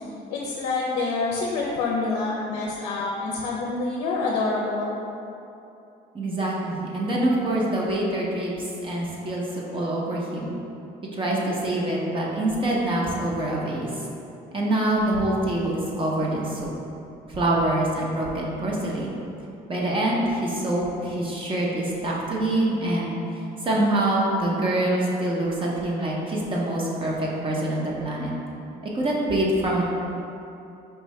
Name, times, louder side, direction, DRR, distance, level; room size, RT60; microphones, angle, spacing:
voice 1, 0.3-5.0, left 3 dB, 80° left, -3 dB, 0.5 m, -27 dB
voice 2, 6.1-8.5 8.8-10.5 11.1-13.9 14.5-16.7 17.3-19.2 19.7-23.2 23.6-28.3 28.8-29.8, right 1 dB, 30° right, -4 dB, 0.7 m, -25 dB
4.5 x 2.6 x 3.1 m, 2.7 s
cardioid pair, 110°, 17 cm